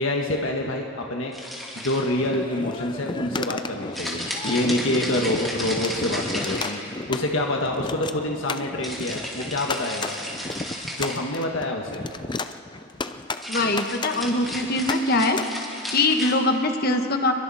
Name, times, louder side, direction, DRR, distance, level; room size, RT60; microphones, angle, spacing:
voice 1, 0.0-1.3 1.8-6.8 7.1-10.1 10.9-12.0, left 1 dB, 75° left, 1 dB, 1.6 m, -26 dB
sound 1, 1.3-2.3 3.9-7.1 8.8-11.3 13.3-16.3, equal, ahead, 3.1 m, -33 dB
sound 2, 2.2-15.4, left 3 dB, 20° left, 0.5 m, -33 dB
voice 2, 13.5-15.4 15.9-17.3, left 2 dB, 50° left, 5 dB, 1.5 m, -22 dB
29.5 x 22.5 x 4.3 m, 2.6 s
head